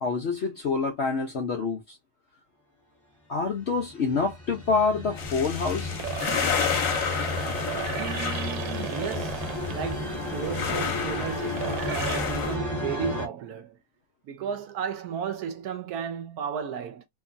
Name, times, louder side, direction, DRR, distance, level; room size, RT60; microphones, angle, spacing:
voice 1, 0.0-2.0 3.3-5.9, left 4 dB, 75° left, 0.6 m, -27 dB
sound 1, 3.6-13.3, left 2 dB, 25° right, 1.2 m, -33 dB
sound 2, 4.7-12.2, right 9 dB, 90° right, 1.3 m, -37 dB
sound 3, 5.2-12.6, left 7 dB, 60° left, 0.9 m, -32 dB
voice 2, 8.0-13.8 14.2-17.1, right 7 dB, 65° right, 1.0 m, -34 dB
2.9 x 2.6 x 2.4 m
omnidirectional pair, 2.0 m